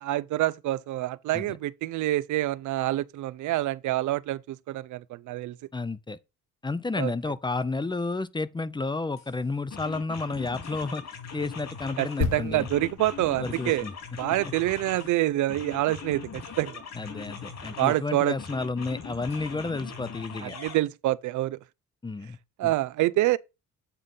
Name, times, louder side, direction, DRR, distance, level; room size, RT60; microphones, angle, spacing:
voice 1, 0.0-5.6 7.0-7.1 12.0-13.9 14.2-16.8 17.8-18.4 20.4-21.6 22.6-23.4, right 16 dB, 75° right, 0.5 m, -27 dB
voice 2, 5.7-6.2 6.6-11.0 11.3-12.7 13.4-13.9 17.0-20.6 22.0-22.7, left 3 dB, 15° left, 0.6 m, -31 dB
sound 1, 9.2-9.3 9.7-12.2 12.6-15.1 15.5-18.0 18.4-20.7, left 6 dB, 60° left, 3.4 m, -41 dB
sound 2, 12.2-15.9 16.1-16.3, left 6 dB, 80° left, 2.4 m, -35 dB
8.3 x 3.7 x 5.3 m
cardioid pair, 90°, 30 cm